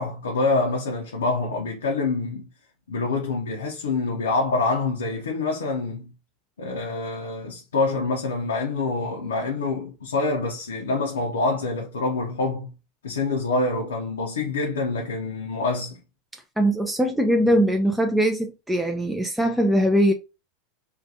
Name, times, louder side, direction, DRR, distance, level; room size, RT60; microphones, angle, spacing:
voice 1, 0.0-2.5 2.9-6.1 6.6-12.7 13.0-16.0, left 3 dB, 85° left, 0.5 m, -26 dB
voice 2, 16.6-20.1, equal, 5° right, 0.3 m, -21 dB
2.4 x 2.2 x 2.6 m
hypercardioid pair, 90°, 0 cm